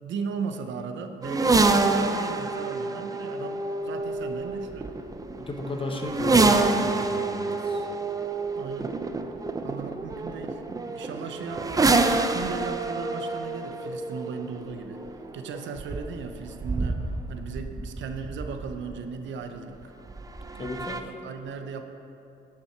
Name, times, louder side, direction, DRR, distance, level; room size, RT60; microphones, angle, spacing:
voice 1, 0.0-4.9 8.6-8.9 9.6-15.0 15.3-19.9 20.6-21.8, right 5 dB, 70° right, 6 dB, 0.7 m, -37 dB
sound 1, 1.2-19.0 20.1-21.0, right 3 dB, 20° right, 0.5 m, -27 dB
voice 2, 5.4-7.9 20.6-21.1, left 2 dB, 25° left, 3 dB, 1.1 m, -33 dB
11.5 x 5.8 x 4.5 m, 2.8 s
cardioid pair, 90°, 20 cm